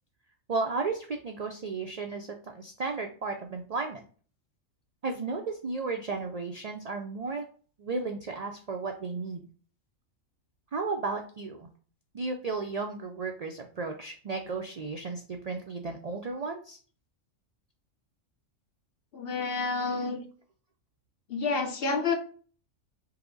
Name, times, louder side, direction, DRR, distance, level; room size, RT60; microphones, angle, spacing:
voice 1, 0.5-4.0 5.0-7.4 7.8-9.5 10.7-11.7 12.1-16.8, right 4 dB, 70° right, 3 dB, 0.3 m, -34 dB
voice 2, 19.1-20.2 21.3-22.2, left 4 dB, 55° left, 4 dB, 0.8 m, -29 dB
5.6 x 2.1 x 3.8 m, 0.41 s
omnidirectional pair, 1.3 m